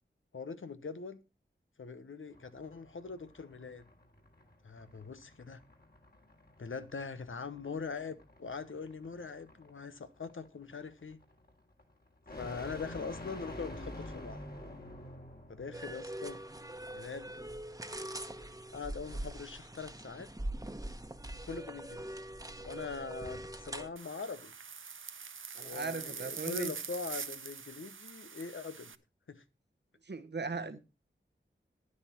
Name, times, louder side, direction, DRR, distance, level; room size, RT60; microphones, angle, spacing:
voice 1, 0.3-1.2 1.8-3.8 4.6-5.6 6.6-11.2 12.4-14.4 15.5-16.4 16.9-17.5 18.7-20.3 21.4-22.1 22.6-24.5 25.6-28.9 29.3-29.4 30.6-30.7, left 4 dB, 80° left, 1.0 m, -42 dB
sound 1, 2.3-15.8, left 1 dB, 50° left, 3.4 m, -49 dB
The Eastern Side Of Things, 15.7-23.9, right 1 dB, 15° right, 1.2 m, -43 dB
sound 2, 24.0-29.0, right 6 dB, 80° right, 0.7 m, -44 dB
voice 2, 25.5-26.7 30.0-30.8, right 4 dB, 60° right, 1.0 m, -38 dB
10.5 x 9.8 x 4.4 m
wide cardioid pair, 40°, 20 cm